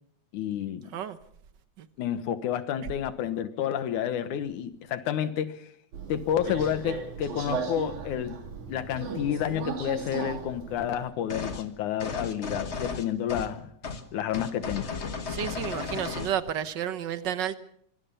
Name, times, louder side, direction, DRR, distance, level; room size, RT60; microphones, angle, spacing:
voice 1, 0.3-0.9 2.0-5.7 6.1-13.7 14.1-14.9, left 10 dB, 90° left, 2.7 m, -30 dB
Subway metro underground, 5.9-11.1, right 5 dB, 80° right, 3.9 m, -36 dB
sound 1, 11.3-11.7 12.0-13.6 13.8-14.0 14.3-16.4, left 4 dB, 50° left, 0.7 m, -34 dB
voice 2, 15.3-17.6, right 9 dB, 60° right, 1.1 m, -31 dB
25.0 x 23.5 x 5.6 m
omnidirectional pair, 3.4 m